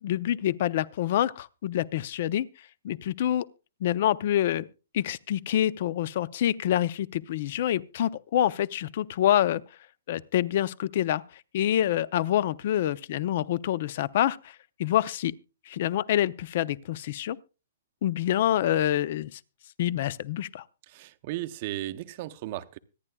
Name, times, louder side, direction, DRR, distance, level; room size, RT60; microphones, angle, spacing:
voice 1, 0.0-2.5 2.8-3.5 3.8-4.7 4.9-9.6 10.1-11.2 11.5-15.3 15.7-17.4 18.0-19.4 19.8-20.6, left 11 dB, 50° left, 0.5 m, -26 dB
voice 2, 20.9-22.8, right 15 dB, 40° right, 0.7 m, -35 dB
25.0 x 9.9 x 2.3 m
hypercardioid pair, 155°, 0 cm